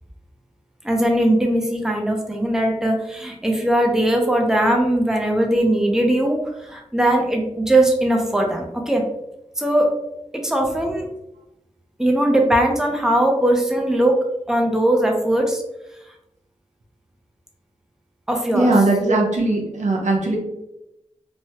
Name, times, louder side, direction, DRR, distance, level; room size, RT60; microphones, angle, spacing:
voice 1, 0.8-9.0 9.6-9.9 10.3-11.1 12.0-15.6 18.3-18.7, right 1 dB, 5° right, 1 dB, 0.6 m, -20 dB
voice 2, 18.5-20.4, right 2 dB, 80° right, -1 dB, 0.7 m, -19 dB
3.1 x 2.2 x 2.8 m, 0.86 s
wide cardioid pair, 65°, 12 cm